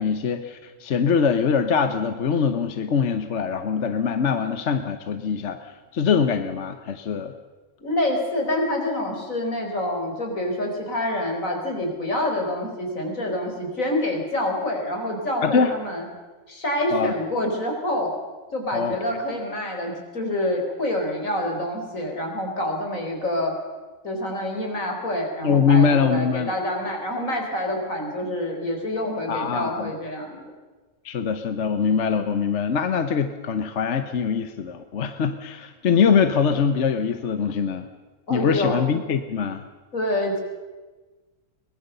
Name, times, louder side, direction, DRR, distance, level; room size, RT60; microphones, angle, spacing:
voice 1, 0.0-7.3 15.4-15.7 16.9-17.1 18.7-19.0 25.4-26.5 29.3-29.9 31.0-37.9 38.3-39.6, left 6 dB, 60° left, 9 dB, 1.3 m, -23 dB
voice 2, 7.8-16.1 16.5-18.2 18.5-23.5 24.0-30.4 38.3-38.8 39.9-40.4, left 1 dB, 90° left, 2 dB, 4.6 m, -27 dB
23.0 x 19.5 x 6.8 m, 1.3 s
omnidirectional pair, 1.4 m